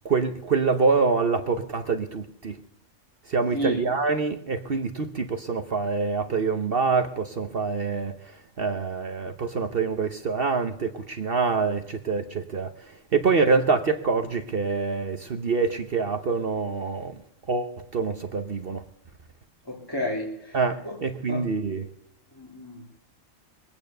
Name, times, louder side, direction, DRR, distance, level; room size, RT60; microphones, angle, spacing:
voice 1, 0.0-2.6 3.2-17.2 17.5-18.8 20.5-21.8, right 4 dB, 50° right, 1.0 m, -26 dB
voice 2, 3.5-3.9 19.6-21.5 22.3-22.9, left 1 dB, 15° left, 2.4 m, -32 dB
22.5 x 9.1 x 6.6 m
omnidirectional pair, 1.3 m